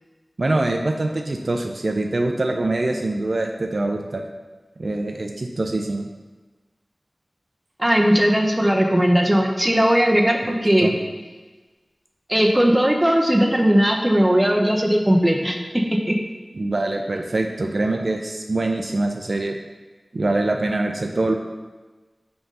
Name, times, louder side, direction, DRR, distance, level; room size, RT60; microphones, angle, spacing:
voice 1, 0.4-4.2 4.8-6.0 10.8-11.0 16.5-19.6 20.1-21.3, right 2 dB, 65° right, 3 dB, 0.5 m, -24 dB
voice 2, 7.8-10.9 12.3-16.2, equal, 15° right, 1 dB, 1.0 m, -18 dB
5.8 x 3.9 x 5.4 m, 1.3 s
wide cardioid pair, 40°, 0 cm